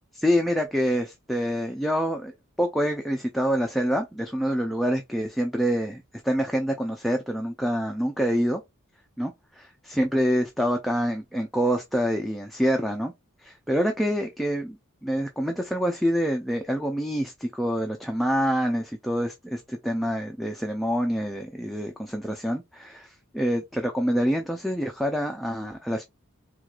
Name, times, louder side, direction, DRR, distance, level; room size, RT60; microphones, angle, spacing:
voice 1, 0.1-8.6 9.2-13.1 13.4-26.0, equal, ahead, 0.4 m, -26 dB
4.4 x 2.4 x 2.3 m
head